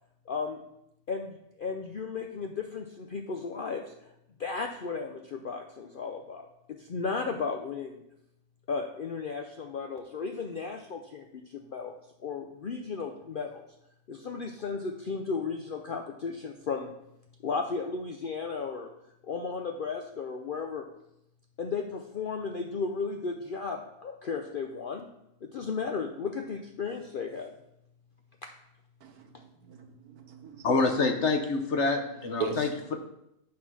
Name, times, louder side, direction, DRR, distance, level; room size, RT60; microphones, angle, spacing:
voice 1, 0.3-0.6 1.1-4.1 4.4-6.5 6.8-8.0 8.7-11.3 11.5-12.0 12.2-13.6 14.1-16.9 17.4-18.9 19.2-20.9 21.6-25.1 25.4-27.5 28.4-28.5, left 5 dB, 90° left, 4 dB, 0.4 m, -34 dB
voice 2, 29.0-30.7 32.4-32.7, right 4 dB, 75° right, 4 dB, 1.5 m, -38 dB
voice 3, 30.6-33.0, left 3 dB, 55° left, 5 dB, 1.0 m, -27 dB
8.7 x 3.8 x 6.0 m, 0.80 s
omnidirectional pair, 1.6 m